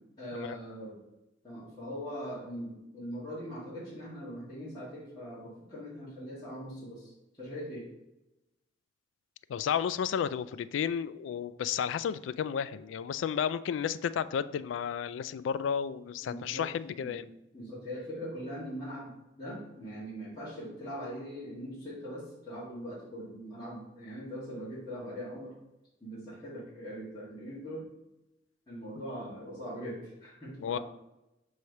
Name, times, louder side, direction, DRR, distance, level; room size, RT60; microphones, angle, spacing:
voice 1, 0.2-1.0 1.4-7.1 7.4-7.8 16.2-16.6 16.9-17.2 17.5-25.5 26.0-27.8 28.7-30.8, equal, 25° left, -11 dB, 1.7 m, -41 dB
voice 2, 9.5-17.2 30.6-30.8, left 8 dB, 85° left, 16 dB, 0.3 m, -32 dB
5.7 x 3.2 x 5.3 m, 0.95 s
head